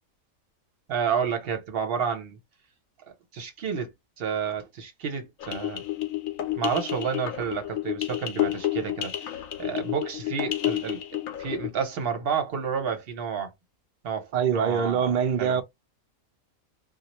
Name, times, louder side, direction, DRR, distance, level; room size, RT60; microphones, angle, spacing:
voice 1, 0.9-2.4 3.3-3.9 4.2-5.8 6.6-11.0 11.4-13.5 14.0-15.6, right 6 dB, 55° right, 0.8 m, -30 dB
sound 1, 5.4-11.7, left 13 dB, 80° left, 1.0 m, -30 dB
voice 2, 14.3-15.6, right 7 dB, 85° right, 0.4 m, -24 dB
2.2 x 2.0 x 2.8 m
omnidirectional pair, 1.4 m